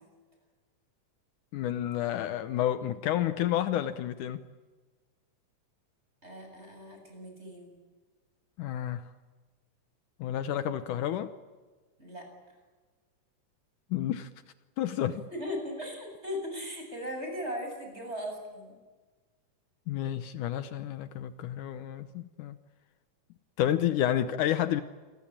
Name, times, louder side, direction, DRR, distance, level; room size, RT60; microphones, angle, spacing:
voice 1, 1.5-4.4 8.6-9.0 10.2-11.3 13.9-14.3 14.8-15.2 19.9-22.6 23.6-24.8, left 11 dB, 75° left, 11 dB, 2.4 m, -30 dB
voice 2, 6.2-7.7 12.0-12.3 15.3-18.8, equal, 20° right, 3 dB, 7.9 m, -38 dB
28.0 x 22.5 x 8.8 m, 1.3 s
omnidirectional pair, 3.7 m